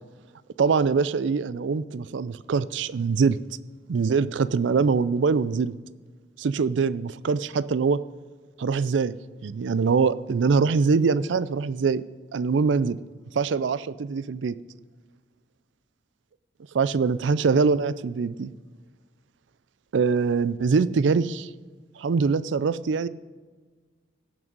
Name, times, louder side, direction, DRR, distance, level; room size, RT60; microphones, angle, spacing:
voice 1, 0.6-3.4 3.9-5.7 6.4-8.0 8.6-9.1 9.4-12.1 12.3-13.0 13.3-14.5 16.7-18.5 19.9-21.5 22.0-23.1, right 5 dB, 85° right, 17 dB, 0.4 m, -23 dB
17.0 x 6.1 x 5.3 m, 1.5 s
head